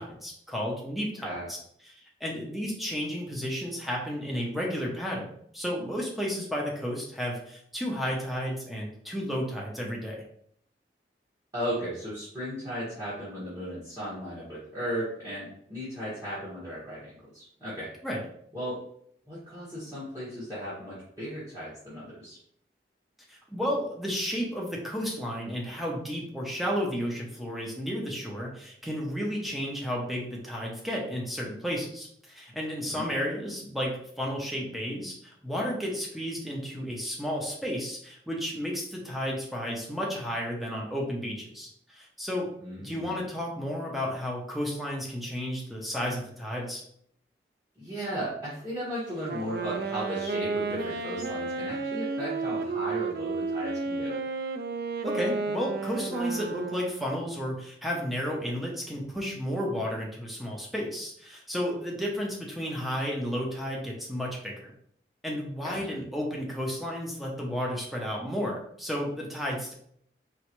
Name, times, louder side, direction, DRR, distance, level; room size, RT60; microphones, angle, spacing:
voice 1, 0.0-1.6 1.9-10.2 18.0-18.2 23.3-42.5 42.8-46.8 55.0-64.7 65.2-69.7, equal, ahead, -2 dB, 0.8 m, -32 dB
voice 2, 11.5-17.9 18.5-18.8 19.3-22.4 32.9-33.1 42.6-43.1 47.7-54.2 65.6-66.0, equal, 20° right, -10 dB, 1.7 m, -36 dB
Wind instrument woodwind instrument, 49.2-57.1, right 4 dB, 55° right, 0.4 m, -32 dB
4.6 x 3.1 x 3.1 m, 0.67 s
head